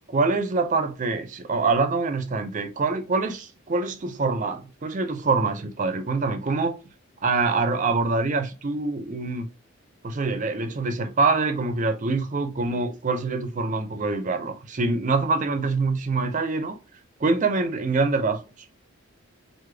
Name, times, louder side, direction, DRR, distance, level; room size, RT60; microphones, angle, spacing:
voice 1, 0.1-6.8 7.2-9.5 10.0-16.8 17.2-18.4, right 3 dB, 35° right, 0.5 m, -25 dB
3.2 x 2.1 x 3.3 m
head